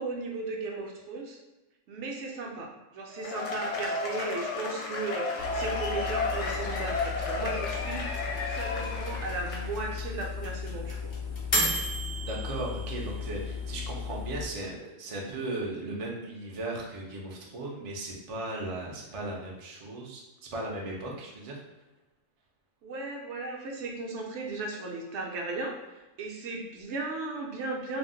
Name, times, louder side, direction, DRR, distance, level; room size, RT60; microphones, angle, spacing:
voice 1, 0.0-1.4 1.9-8.1 8.5-11.1 22.8-28.0, right 3 dB, 70° right, -1 dB, 0.8 m, -36 dB
Cheering / Applause / Crowd, 3.1-9.9, left 3 dB, 70° left, 0.9 m, -33 dB
sound 1, 5.4-14.4, left 3 dB, 40° left, 0.4 m, -34 dB
voice 2, 12.3-21.6, right 2 dB, 45° right, -2 dB, 0.4 m, -37 dB
2.5 x 2.0 x 3.7 m, 1.1 s
omnidirectional pair, 1.3 m